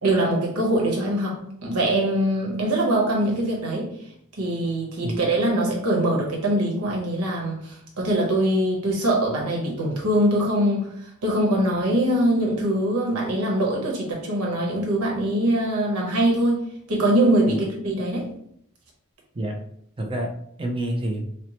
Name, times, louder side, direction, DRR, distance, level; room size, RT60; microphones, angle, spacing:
voice 1, 0.0-3.9 4.4-18.3, right 1 dB, 85° right, -2 dB, 1.0 m, -23 dB
voice 2, 20.0-21.3, right 1 dB, 25° right, 2 dB, 0.5 m, -28 dB
4.3 x 2.1 x 2.9 m, 0.69 s
head